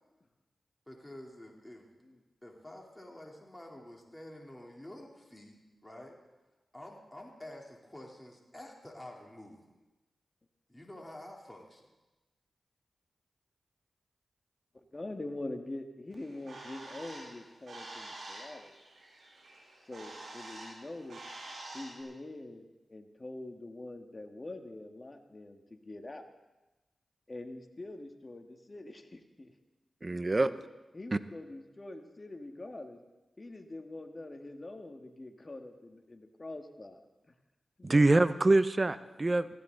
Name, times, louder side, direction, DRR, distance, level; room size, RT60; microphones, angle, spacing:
voice 1, 0.9-1.9 2.4-6.2 6.7-9.8 10.7-11.9, left 1 dB, 15° left, -1 dB, 3.3 m, -49 dB
voice 2, 14.7-18.8 19.9-21.2 21.7-26.3 27.3-29.5 30.1-30.6 30.9-33.0 33.4-37.0 37.8-38.1, left 2 dB, 35° left, 5 dB, 1.8 m, -44 dB
Bird, 16.1-22.0, right 2 dB, 75° right, 6.5 m, -47 dB
voice 3, 30.0-30.5 37.8-39.5, right 2 dB, 35° right, 13 dB, 0.8 m, -25 dB
19.0 x 15.5 x 3.9 m, 1.1 s
cardioid pair, 50°, 0 cm